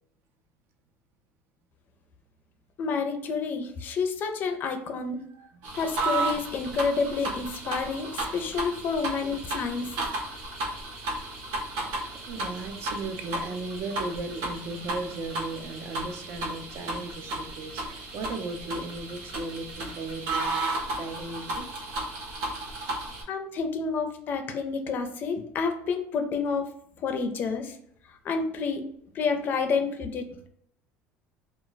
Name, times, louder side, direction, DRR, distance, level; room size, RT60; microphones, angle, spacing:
voice 1, 2.8-5.2 5.7-10.0 23.3-26.7 27.0-27.8 28.2-28.9 29.1-30.3, left 5 dB, 40° left, 6 dB, 0.4 m, -29 dB
voice 2, 5.3-5.7 11.5-11.7 12.1-21.7, right 3 dB, 50° right, 6 dB, 0.4 m, -37 dB
sound 1, 5.6-23.2, right 2 dB, 80° right, 0.9 m, -34 dB
2.3 x 2.1 x 3.9 m, 0.68 s
cardioid pair, 145°, 5 cm